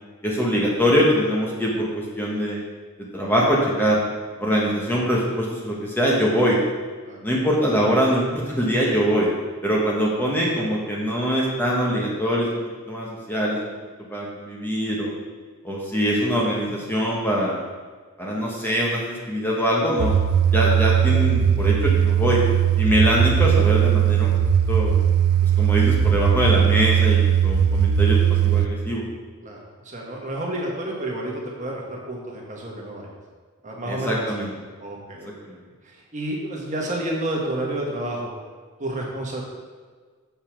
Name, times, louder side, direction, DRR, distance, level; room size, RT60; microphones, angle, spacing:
voice 1, 0.2-2.6 3.1-4.0 4.4-6.6 7.2-9.3 9.6-12.5 12.9-13.7 14.1-15.1 15.6-17.6 18.2-20.1 20.5-22.4 22.8-24.3 24.7-24.9 25.6-28.2 28.4-29.0 33.9-34.5, equal, 10° left, -4 dB, 1.2 m, -23 dB
sound 1, 20.0-28.7, right 9 dB, 80° right, 0.4 m, -19 dB
voice 2, 29.4-33.1 33.6-34.3 34.8-35.3 36.1-38.3 38.8-39.4, right 1 dB, 35° right, -2 dB, 1.5 m, -30 dB
7.0 x 5.5 x 6.1 m, 1.5 s
head